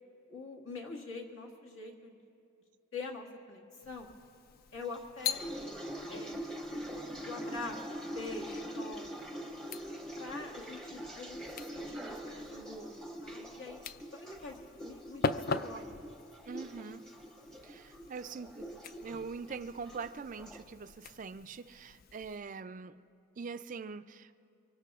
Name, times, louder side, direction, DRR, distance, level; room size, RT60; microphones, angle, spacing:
voice 1, 0.3-2.2 2.9-3.6 3.8-4.1 4.7-5.7 6.1-6.4 7.2-9.3 10.2-11.4 11.7-12.9 13.2-13.8 14.1-15.9, left 3 dB, 70° left, 0 dB, 1.8 m, -44 dB
sound 1, 3.8-22.4, left 5 dB, 45° left, 0.3 m, -43 dB
sound 2, 4.9-20.6, equal, ahead, 0.8 m, -44 dB
voice 2, 16.5-17.0 17.6-18.7 19.0-22.9 23.4-24.3, right 5 dB, 35° right, 11 dB, 0.3 m, -43 dB
24.5 x 24.0 x 2.4 m, 2.6 s
head